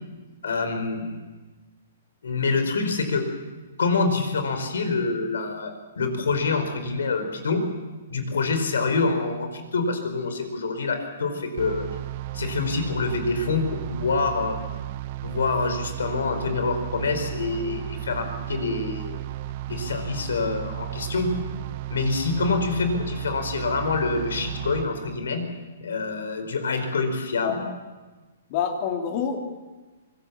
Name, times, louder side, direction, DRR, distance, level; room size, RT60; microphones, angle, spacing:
voice 1, 0.4-1.2 2.2-3.3 3.8-7.6 8.1-11.9 12.3-14.6 15.2-19.2 19.7-21.3 21.9-25.5 25.8-27.6, left 4 dB, 90° left, 7 dB, 5.0 m, -26 dB
sound 1, 11.6-24.9, right 14 dB, 40° right, 1.0 m, -34 dB
voice 2, 27.4-27.8 28.5-29.5, left 7 dB, 35° left, 4 dB, 2.9 m, -27 dB
25.0 x 20.0 x 7.2 m, 1.2 s
hypercardioid pair, 160°, 0 cm